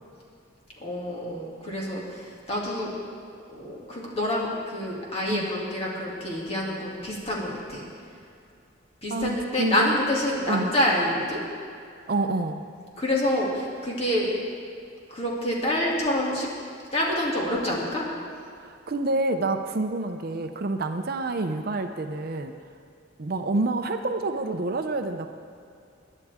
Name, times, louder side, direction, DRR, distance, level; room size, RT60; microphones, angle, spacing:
voice 1, 0.8-2.9 3.5-7.8 9.0-11.4 13.0-14.3 15.1-16.5 16.9-18.0, left 1 dB, 30° left, -4 dB, 2.5 m, -27 dB
voice 2, 9.1-10.0 10.5-10.7 12.1-12.6 18.6-22.5 23.2-25.3, right 2 dB, 45° right, 7 dB, 0.5 m, -28 dB
22.0 x 10.5 x 3.6 m, 2.4 s
head